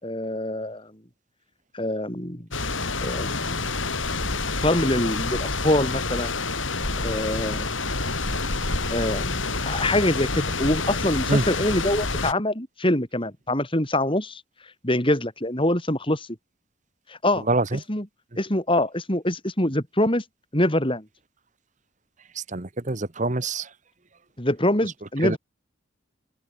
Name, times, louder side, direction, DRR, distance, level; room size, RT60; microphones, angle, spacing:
voice 1, 0.0-0.9 1.7-2.5 3.0-3.6 4.6-6.4 7.0-7.8 8.9-14.4 14.8-16.3 17.1-17.5 17.9-18.1 18.4-20.2 20.5-21.0 24.4-25.4, left 1 dB, 25° left, 5.1 m, -24 dB
sound 1, 2.5-12.3, left 3 dB, 80° left, 6.7 m, -28 dB
voice 2, 17.5-17.8 22.5-23.6 25.2-25.4, right 2 dB, 40° right, 1.4 m, -24 dB
head